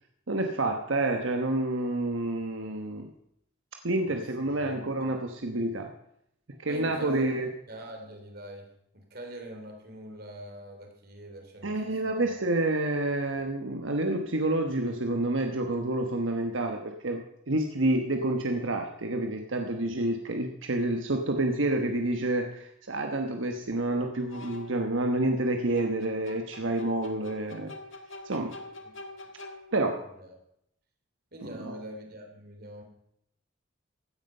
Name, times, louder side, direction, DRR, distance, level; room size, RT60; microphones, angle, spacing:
voice 1, 0.3-3.1 3.8-5.9 6.6-7.5 11.6-27.7 28.2-28.5 29.7-30.0 31.5-31.8, right 2 dB, 85° right, 4 dB, 1.1 m, -28 dB
voice 2, 4.0-4.9 6.6-12.3 28.8-28.9 30.1-30.4 31.3-32.8, equal, 50° right, 4 dB, 3.1 m, -44 dB
sound 1, 22.2-22.3 24.3-24.9 25.8-30.0, left 2 dB, 85° left, 1.6 m, -46 dB
16.0 x 9.5 x 5.5 m, 0.74 s
head